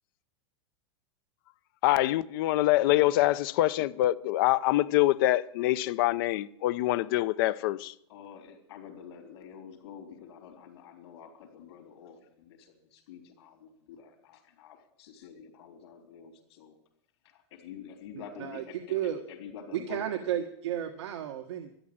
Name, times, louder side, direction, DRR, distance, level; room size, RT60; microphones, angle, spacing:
voice 1, 1.8-7.9, left 16 dB, 50° left, 0.6 m, -25 dB
voice 2, 8.1-16.8 17.2-20.0, left 7 dB, 70° left, 3.9 m, -48 dB
voice 3, 18.1-19.2 19.7-21.7, right 11 dB, 80° right, 1.4 m, -33 dB
13.0 x 11.0 x 8.8 m
supercardioid pair, 155°, 14 cm